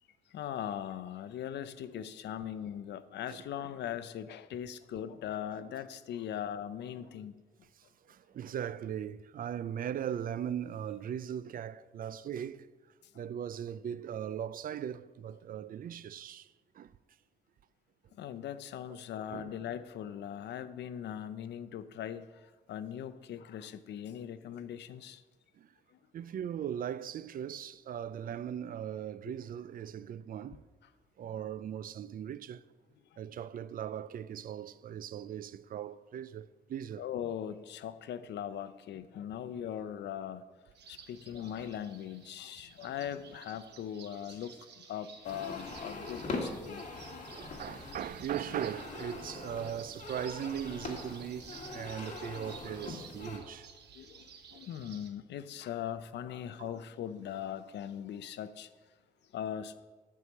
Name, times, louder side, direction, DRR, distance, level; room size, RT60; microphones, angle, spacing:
voice 1, 0.3-7.3 13.1-13.2 18.2-25.2 37.0-40.4 40.9-46.8 52.4-52.5 53.9-58.7 59.3-59.8, left 9 dB, 85° left, 0.5 m, -40 dB
voice 2, 3.3-3.7 5.6-5.7 7.8-12.7 13.1-16.9 18.9-19.0 19.3-19.5 25.6-25.7 26.1-30.6 31.2-32.7 33.2-37.0 47.3-53.7 54.5-54.6 56.6-56.8, right 9 dB, 55° right, 0.4 m, -39 dB
sound 1, 40.7-55.1, right 7 dB, 75° right, 1.0 m, -54 dB
sound 2, 45.2-53.4, left 3 dB, 45° left, 1.8 m, -42 dB
11.0 x 4.8 x 7.1 m
cardioid pair, 110°, 17 cm